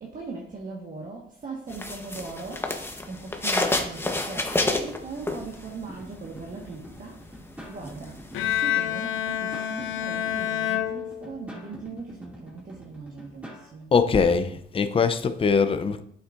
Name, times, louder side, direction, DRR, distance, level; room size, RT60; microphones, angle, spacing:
voice 1, 0.0-2.7 3.1-7.2 7.7-8.2 8.4-13.9, right 4 dB, 45° right, 1.5 m, -39 dB
sound 1, 1.7-5.9 6.2-8.6, left 2 dB, 10° left, 1.0 m, -29 dB
sound 2, 5.9-13.7, right 1 dB, 5° right, 2.4 m, -46 dB
Bowed string instrument, 8.3-11.7, left 11 dB, 85° left, 0.7 m, -28 dB
voice 2, 13.9-16.0, left 5 dB, 30° left, 0.6 m, -22 dB
8.3 x 7.1 x 2.6 m
cardioid pair, 90°, 20 cm